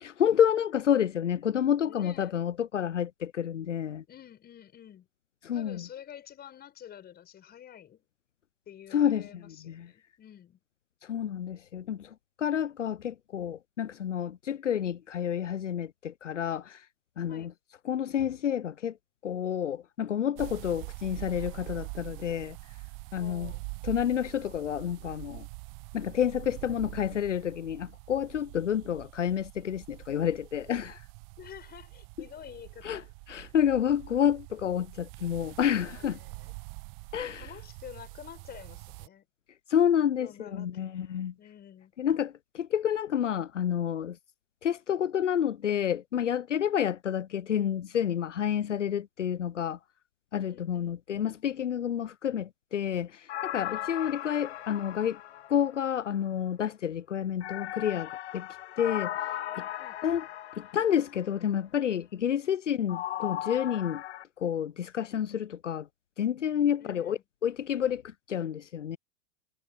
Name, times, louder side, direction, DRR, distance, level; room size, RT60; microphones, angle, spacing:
voice 1, 0.0-4.0 5.4-5.8 8.9-9.3 9.7-9.9 11.1-12.1 12.4-16.8 17.2-17.5 17.9-18.9 19.2-22.6 23.1-23.5 23.8-25.4 25.9-31.0 32.8-33.0 33.3-36.2 37.1-37.5 39.7-41.3 42.0-44.2 44.6-49.8 50.3-55.2 55.5-58.5 58.8-59.1 59.6-59.7 60.0-60.2 60.6-64.0 64.4-65.9 66.2-68.0 68.3-69.0, left 9 dB, 85° left, 0.6 m, -29 dB
voice 2, 1.8-2.4 4.1-5.1 5.5-8.1 8.7-10.6 17.3-17.5 23.1-23.6 31.4-33.1 36.0-36.6 37.4-39.3 40.2-41.0 41.4-41.9 50.5-51.0 59.8-60.0 66.8-67.2, left 10 dB, 25° left, 6.9 m, -49 dB
sound 1, 20.4-39.1, right 33 dB, 40° right, 1.1 m, -44 dB
sound 2, 53.3-56.1 57.4-61.2 62.9-64.2, left 12 dB, 65° left, 1.4 m, -37 dB
figure-of-eight pair, 100°, 36 cm